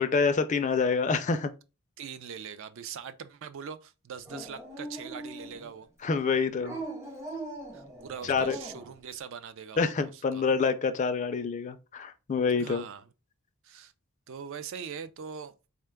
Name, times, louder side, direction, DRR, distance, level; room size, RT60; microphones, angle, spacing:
voice 1, 0.0-1.5 4.3-4.4 6.0-6.8 8.2-8.6 9.8-12.8, left 5 dB, 35° left, 0.3 m, -27 dB
voice 2, 2.0-5.9 7.7-10.4 12.6-13.1 13.6-13.9 14.3-15.5, right 7 dB, 60° right, 0.4 m, -42 dB
Dog, 4.3-5.8 6.6-8.9, right 2 dB, 15° right, 0.6 m, -41 dB
3.7 x 2.2 x 3.3 m
head